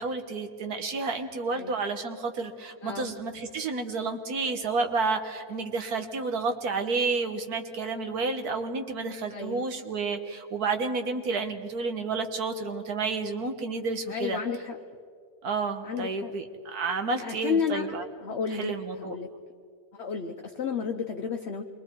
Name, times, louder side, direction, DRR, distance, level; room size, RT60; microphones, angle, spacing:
voice 1, 0.0-14.4 15.4-16.4 16.7-18.0 18.6-19.1, right 4 dB, 75° right, 6 dB, 1.9 m, -30 dB
voice 2, 2.8-3.1 9.3-9.7 14.1-14.8 15.8-16.3 17.2-19.3 19.9-21.6, left 6 dB, 50° left, 4 dB, 1.0 m, -32 dB
27.5 x 23.0 x 4.6 m, 2.2 s
omnidirectional pair, 1.6 m